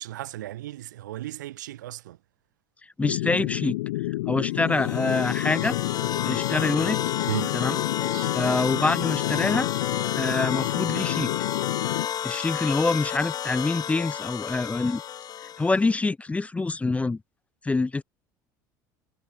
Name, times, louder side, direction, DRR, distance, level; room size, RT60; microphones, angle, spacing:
voice 1, 0.0-2.2 7.3-7.5 8.1-8.3, right 14 dB, 85° right, 0.8 m, -35 dB
sound 1, 3.0-12.1, left 19 dB, 80° left, 0.9 m, -29 dB
voice 2, 3.0-3.8 4.3-5.8 6.2-7.0 7.5-7.8 8.3-9.7 10.1-11.3 12.2-15.0 15.6-17.2 17.6-18.0, left 3 dB, 15° left, 0.4 m, -25 dB
sound 2, 4.7-15.9, left 9 dB, 45° left, 1.4 m, -31 dB
hypercardioid pair, 75°, 10 cm